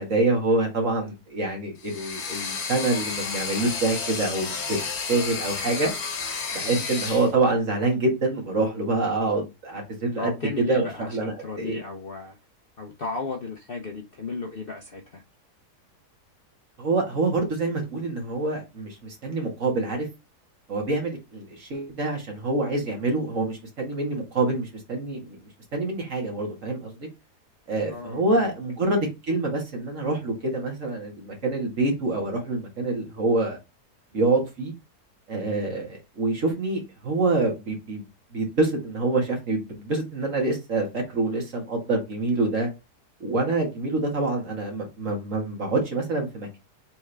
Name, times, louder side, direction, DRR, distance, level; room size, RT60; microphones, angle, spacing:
voice 1, 0.0-4.8 5.1-5.9 6.5-10.3 10.7-11.8 16.8-20.1 20.7-25.4 25.7-27.1 27.7-33.6 34.1-34.7 35.3-38.0 38.3-42.7 43.2-46.6, right 2 dB, 50° right, 1.9 m, -26 dB
sound 1, 1.8-7.3, left 5 dB, 65° left, 1.5 m, -31 dB
voice 2, 10.2-12.4 12.8-15.2 27.9-28.5, left 4 dB, 50° left, 0.7 m, -34 dB
4.4 x 3.5 x 3.3 m
omnidirectional pair, 1.7 m